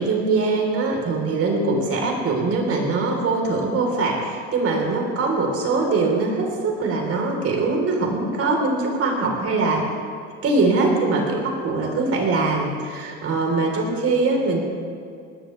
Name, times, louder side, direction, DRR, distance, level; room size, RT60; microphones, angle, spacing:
voice 1, 0.0-9.9 10.4-14.6, right 3 dB, 50° right, 0 dB, 4.1 m, -22 dB
19.5 x 16.5 x 3.4 m, 2.3 s
supercardioid pair, 95°, 30 cm